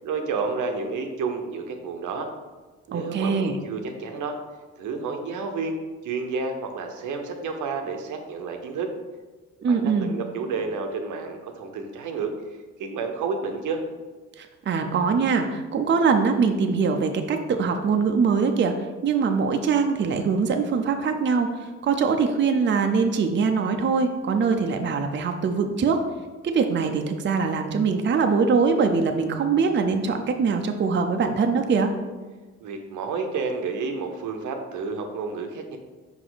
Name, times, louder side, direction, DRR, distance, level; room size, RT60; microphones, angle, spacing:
voice 1, 0.0-2.3 2.9-4.4 4.8-5.8 6.0-8.9 9.6-12.3 12.8-13.8 32.6-35.8, right 4 dB, 80° right, 5 dB, 0.9 m, -30 dB
voice 2, 2.9-3.6 9.6-10.2 14.4-18.7 19.0-26.0 26.4-31.9, right 5 dB, 40° right, 5 dB, 0.6 m, -23 dB
5.4 x 5.0 x 4.0 m, 1.3 s
cardioid pair, 90°, 30 cm